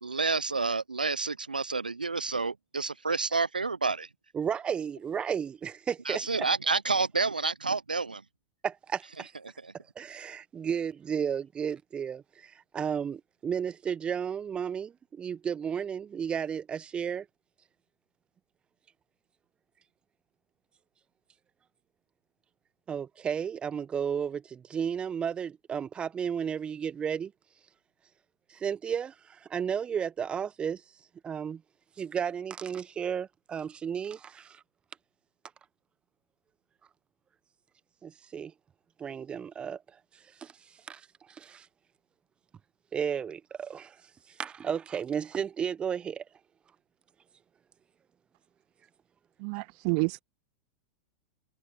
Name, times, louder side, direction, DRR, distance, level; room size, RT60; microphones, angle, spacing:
voice 1, 0.0-4.1 6.1-8.2 9.6-9.7, right 4 dB, 85° right, 0.7 m, -29 dB
voice 2, 4.3-6.2 8.6-9.3 10.0-17.3 22.9-27.3 28.5-30.8 31.2-31.6 32.0-34.6 38.0-38.5 39.0-39.8 40.4-40.5 40.9-41.7 42.9-44.0 44.4-46.2, right 7 dB, 20° right, 1.1 m, -33 dB
voice 3, 49.4-50.2, right 38 dB, 45° right, 0.4 m, -29 dB
figure-of-eight pair, 90°, 5 cm